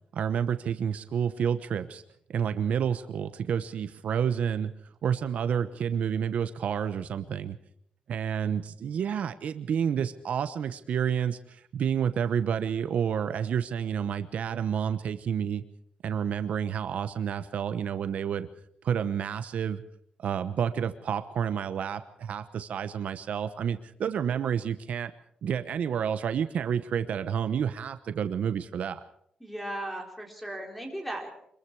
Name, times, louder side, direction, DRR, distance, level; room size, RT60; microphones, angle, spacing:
voice 1, 0.1-2.0 2.3-4.7 5.0-7.6 8.1-15.6 16.0-18.5 18.8-19.8 20.2-25.1 25.4-29.0, right 8 dB, 65° right, 10 dB, 1.0 m, -29 dB
voice 2, 29.4-31.3, right 1 dB, 5° left, 3 dB, 4.2 m, -36 dB
25.5 x 22.0 x 4.8 m, 0.68 s
wide cardioid pair, 160°, 3 cm